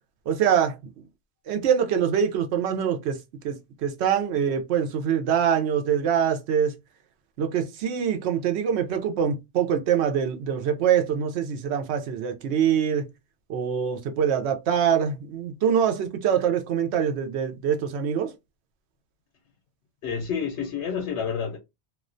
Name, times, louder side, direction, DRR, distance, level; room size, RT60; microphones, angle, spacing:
voice 1, 0.3-0.7 1.5-3.2 3.4-6.8 7.4-13.1 13.5-18.3, right 8 dB, 85° right, 0.8 m, -24 dB
voice 2, 20.0-21.6, left 6 dB, 85° left, 0.9 m, -29 dB
2.3 x 2.1 x 2.4 m
omnidirectional pair, 1.1 m